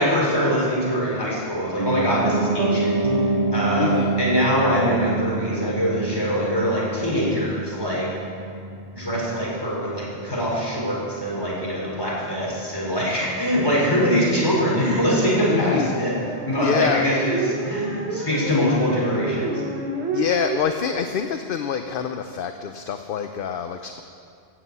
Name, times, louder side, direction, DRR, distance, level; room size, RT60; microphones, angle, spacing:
voice 1, 0.0-2.9 3.2-8.1 8.9-16.2 16.5-19.6, equal, 20° left, -6 dB, 4.5 m, -23 dB
Piano, 1.8-11.8 12.1-12.2, right 3 dB, 40° right, 1.1 m, -27 dB
voice 2, 3.8-4.2 15.5-15.9 16.6-17.2 20.1-24.0, left 7 dB, 60° left, 7 dB, 0.8 m, -26 dB
sound 1, 16.2-20.6, right 2 dB, 85° right, 1.6 m, -29 dB
15.0 x 8.0 x 8.1 m, 2.4 s
omnidirectional pair, 1.1 m